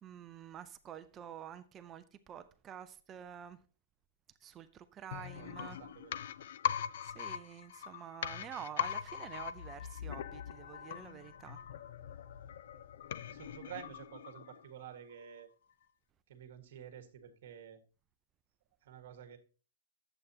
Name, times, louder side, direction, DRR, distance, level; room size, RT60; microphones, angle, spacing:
voice 1, 0.0-3.6 4.4-5.8 7.0-11.6, right 9 dB, 15° right, 0.4 m, -48 dB
sound 1, 5.1-14.8 15.1-15.2, left 9 dB, 55° left, 0.4 m, -41 dB
voice 2, 5.3-6.2 13.2-15.5 16.3-17.8 18.8-19.4, right 9 dB, 50° right, 1.6 m, -50 dB
10.5 x 7.8 x 2.8 m
hypercardioid pair, 170°, 0 cm